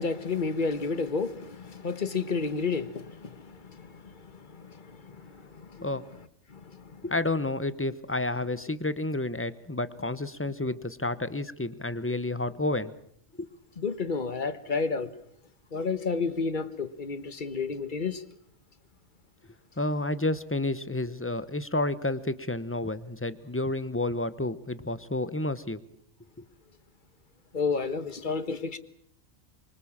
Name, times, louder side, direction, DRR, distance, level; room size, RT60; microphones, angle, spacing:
voice 1, 0.0-5.9 6.5-7.0 13.8-15.1 15.7-18.2 27.5-28.8, left 4 dB, 40° left, 1.5 m, -31 dB
voice 2, 7.0-12.9 13.4-13.5 19.8-25.8, left 2 dB, 10° left, 0.9 m, -30 dB
25.0 x 24.0 x 7.4 m
omnidirectional pair, 1.3 m